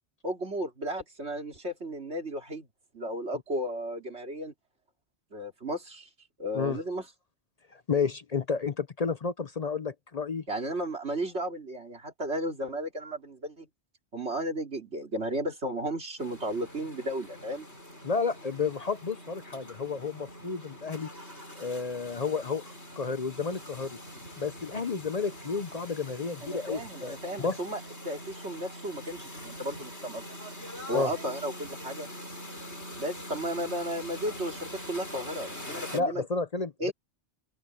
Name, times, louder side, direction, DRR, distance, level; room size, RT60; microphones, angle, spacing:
voice 1, 0.2-2.7 2.9-4.5 5.3-6.1 6.4-7.1 10.5-13.7 14.1-17.7 26.4-30.2 30.9-32.1 33.0-36.2 36.8-36.9, right 1 dB, 85° right, 3.7 m, -34 dB
voice 2, 7.7-10.4 18.0-21.1 21.6-24.0 24.4-27.6 30.9-31.1 35.9-36.9, left 5 dB, 40° left, 0.7 m, -31 dB
sound 1, 16.2-36.0, equal, 80° left, 6.9 m, -44 dB
open air
omnidirectional pair, 1.1 m